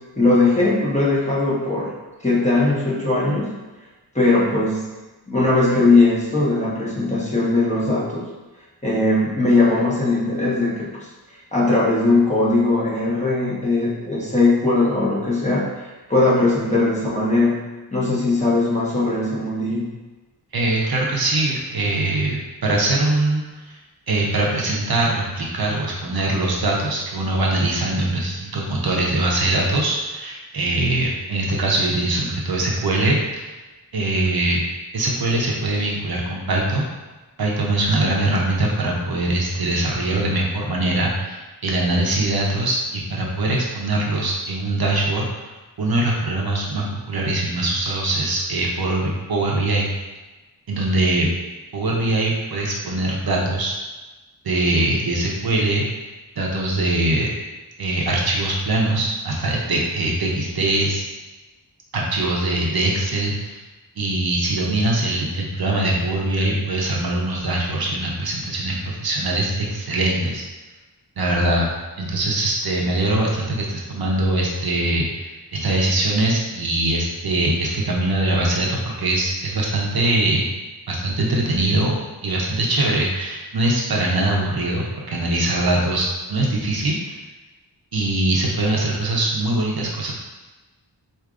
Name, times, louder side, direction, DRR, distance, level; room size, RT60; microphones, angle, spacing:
voice 1, 0.2-1.9 2.2-3.6 4.1-4.9 5.3-8.3 8.8-10.9 11.5-15.6 16.1-19.9, left 2 dB, 15° left, -7 dB, 1.0 m, -19 dB
voice 2, 20.5-23.8 24.1-33.5 33.9-34.6 34.9-36.9 37.4-45.5 45.8-49.9 50.7-51.3 51.7-53.7 54.4-56.0 56.4-57.3 57.8-61.0 61.9-63.6 64.0-70.4 71.2-71.7 72.0-80.5 80.9-87.2 87.9-90.1, right 2 dB, 60° right, -2 dB, 0.6 m, -22 dB
4.6 x 2.5 x 2.4 m, 1.2 s
wide cardioid pair, 85°, 42 cm